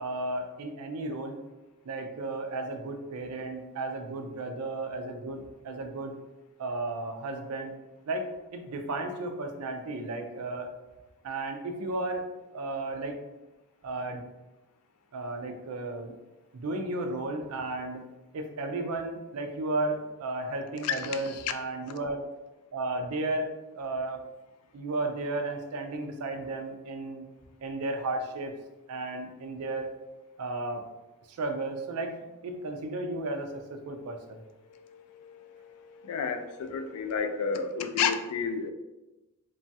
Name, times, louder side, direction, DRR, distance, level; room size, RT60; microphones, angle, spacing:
voice 1, 0.0-1.4 1.8-6.2 6.6-7.7 8.1-10.7 11.2-12.2 12.5-13.2 13.8-14.2 15.1-16.1 16.5-18.0 18.3-22.3 22.7-24.2 24.7-27.3 27.6-28.6 28.9-29.9 30.4-30.8 31.3-32.1 32.4-34.4, right 2 dB, 85° right, 5 dB, 0.4 m, -34 dB
voice 2, 20.8-21.2 34.7-38.7, left 6 dB, 85° left, 8 dB, 0.3 m, -31 dB
3.0 x 2.3 x 2.7 m, 1.1 s
head